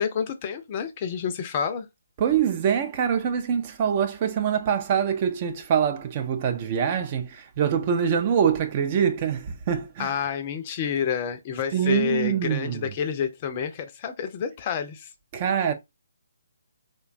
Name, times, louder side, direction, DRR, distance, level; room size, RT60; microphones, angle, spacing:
voice 1, 0.0-1.9 10.0-15.1, left 7 dB, 30° left, 0.4 m, -29 dB
voice 2, 2.2-10.1 11.7-12.9 15.3-15.7, right 8 dB, 35° right, 0.4 m, -24 dB
3.1 x 2.2 x 2.4 m
figure-of-eight pair, 140°, 0 cm